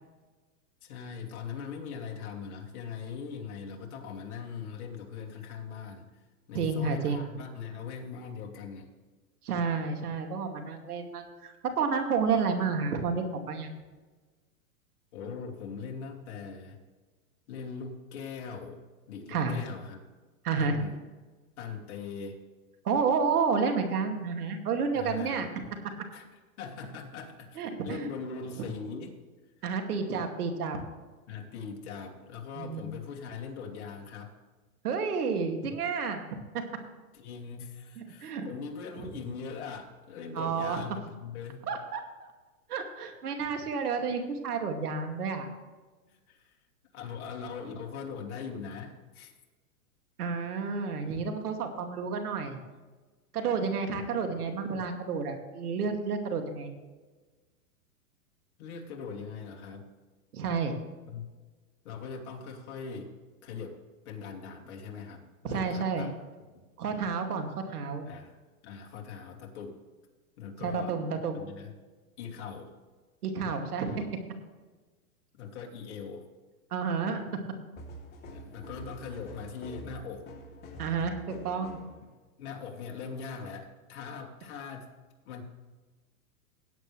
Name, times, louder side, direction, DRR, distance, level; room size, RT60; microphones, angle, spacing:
voice 1, 0.8-6.1 6.5-8.9 15.1-16.8 17.5-18.8 19.1-20.0 20.5-21.0 21.6-22.4 24.9-25.5 26.1-26.3 26.6-29.2 31.3-34.3 37.1-41.7 46.1-46.5 46.9-49.3 58.6-59.9 61.1-61.3 61.8-63.1 63.4-63.8 64.1-66.1 68.1-68.3 68.6-69.8 70.4-70.9 71.3-71.7 72.2-72.7 75.3-76.3 78.3-80.3 82.0-82.1 82.4-84.9 85.3-85.4, left 6 dB, 50° left, 0 dB, 2.5 m, -41 dB
voice 2, 6.5-7.2 9.4-13.7 19.3-19.6 20.4-20.8 22.8-25.5 27.6-28.1 29.6-30.8 32.5-32.9 34.8-36.2 38.0-38.4 39.0-39.1 40.3-40.8 41.7-42.0 42.7-45.5 50.2-52.6 53.3-56.7 60.3-60.7 65.4-66.1 66.8-68.1 70.6-71.4 73.2-74.0 76.7-77.2 80.8-81.8, right 5 dB, 80° right, 5 dB, 2.5 m, -30 dB
sound 1, 77.8-82.0, right 1 dB, 20° left, 2.9 m, -45 dB
17.5 x 8.5 x 3.3 m, 1.3 s
hypercardioid pair, 150°, 45 cm